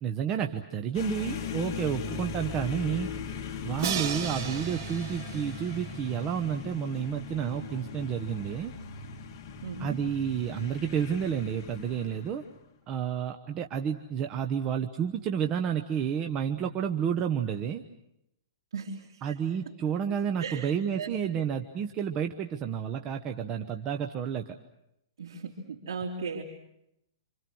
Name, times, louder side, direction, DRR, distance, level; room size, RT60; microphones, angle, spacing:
voice 1, 0.0-3.1 3.6-8.7 9.8-12.4 12.9-17.8 19.2-24.6, right 8 dB, 25° right, 5 dB, 1.0 m, -30 dB
sound 1, 0.9-12.7, left 5 dB, 40° left, 2.3 m, -39 dB
Crash cymbal, 3.8-6.7, right 7 dB, 45° right, 4.7 m, -36 dB
voice 2, 9.6-10.0 18.7-19.4 20.4-20.7 21.0-21.4 25.2-26.4, right 4 dB, 80° right, -2 dB, 3.7 m, -37 dB
28.0 x 27.0 x 6.3 m, 0.82 s
hypercardioid pair, 155°, 2 cm